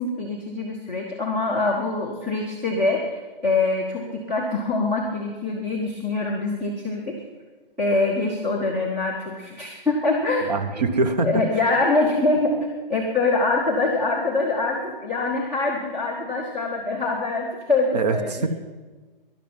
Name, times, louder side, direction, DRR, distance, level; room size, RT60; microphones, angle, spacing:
voice 1, 0.0-7.1 7.8-10.5 11.2-12.6 12.9-18.5, left 3 dB, 5° right, -4 dB, 0.6 m, -24 dB
voice 2, 10.5-11.3 17.9-18.5, right 3 dB, 45° right, 10 dB, 1.3 m, -23 dB
12.5 x 11.0 x 9.2 m, 1.3 s
hypercardioid pair, 175°, 29 cm